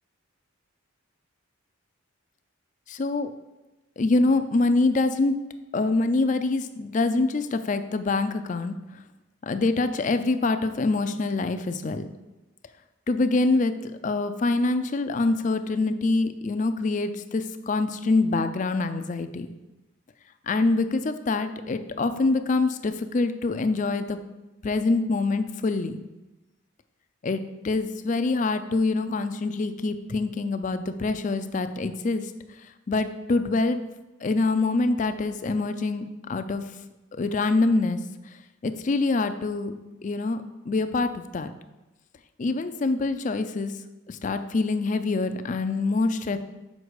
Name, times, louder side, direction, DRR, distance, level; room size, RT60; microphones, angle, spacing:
voice 1, 2.9-3.3 4.0-5.4 5.7-8.8 9.4-12.1 13.1-19.5 20.5-24.2 24.6-26.0 27.2-32.3 32.9-33.8 34.2-36.7 37.1-38.0 38.6-39.8 40.0-41.5 42.4-43.7 44.1-46.4, left 3 dB, 35° left, 9 dB, 0.4 m, -25 dB
6.5 x 5.2 x 4.7 m, 1.1 s
head